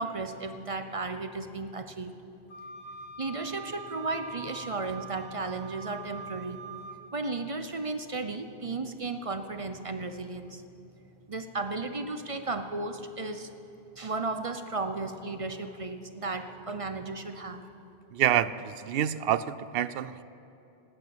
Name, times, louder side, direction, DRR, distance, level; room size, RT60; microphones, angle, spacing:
voice 1, 0.0-2.1 3.2-6.6 7.1-10.6 11.3-13.5 14.0-17.6, right 3 dB, 35° right, 8 dB, 0.7 m, -34 dB
Wind instrument woodwind instrument, 2.5-7.0, right 4 dB, 80° left, 1.8 m, -44 dB
voice 2, 18.1-20.2, right 10 dB, 70° right, 16 dB, 0.7 m, -27 dB
18.0 x 8.8 x 8.9 m, 2.9 s
omnidirectional pair, 1.1 m